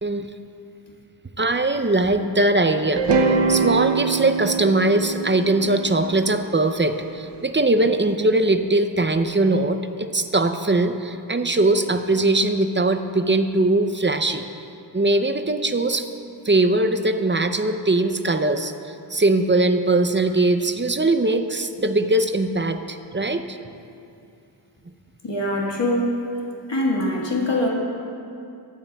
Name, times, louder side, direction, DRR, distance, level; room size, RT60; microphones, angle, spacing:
voice 1, 1.4-3.1 3.5-14.4 14.9-16.1 16.4-23.6, right 2 dB, 25° right, 8 dB, 0.5 m, -21 dB
sound 1, 3.0-7.1, right 4 dB, 75° right, 0.7 m, -23 dB
voice 2, 25.2-26.1 26.7-27.7, left 1 dB, 85° left, -2 dB, 1.7 m, -23 dB
15.0 x 13.0 x 2.3 m, 2.6 s
wide cardioid pair, 50°, 43 cm